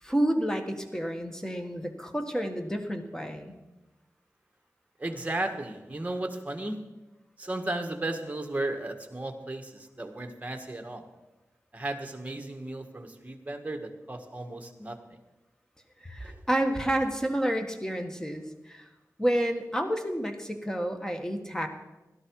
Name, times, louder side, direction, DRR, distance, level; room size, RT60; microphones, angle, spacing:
voice 1, 0.0-3.6 16.0-18.9 19.2-21.7, right 1 dB, 10° left, 5 dB, 1.7 m, -30 dB
voice 2, 5.0-6.8 7.4-11.1 11.7-15.0 16.2-16.4, right 2 dB, 25° right, 5 dB, 1.7 m, -35 dB
17.0 x 12.0 x 4.8 m, 1.1 s
wide cardioid pair, 70°, 6 cm